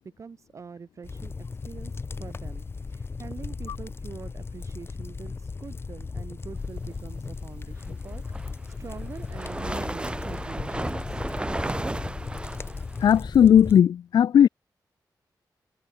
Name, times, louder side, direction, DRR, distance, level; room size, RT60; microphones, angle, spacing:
voice 1, 0.2-8.2 8.8-11.2, right 5 dB, 45° right, 1.4 m, -44 dB
sound 1, 1.0-13.8, left 4 dB, 35° left, 1.4 m, -36 dB
sound 2, 8.1-13.2, right 2 dB, 15° right, 1.0 m, -34 dB
voice 2, 13.0-14.5, left 9 dB, 75° left, 0.4 m, -17 dB
wide cardioid pair, 145°, 7 cm